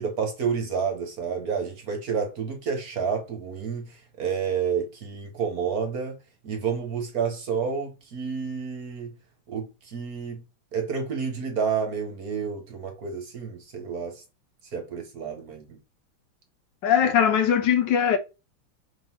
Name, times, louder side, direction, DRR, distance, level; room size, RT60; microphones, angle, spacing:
voice 1, 0.0-6.2 6.4-9.1 9.5-10.4 10.7-14.2 14.7-15.8, right 6 dB, 50° right, 1.4 m, -30 dB
voice 2, 16.8-18.2, left 8 dB, 70° left, 1.2 m, -20 dB
5.9 x 3.8 x 4.4 m
omnidirectional pair, 2.3 m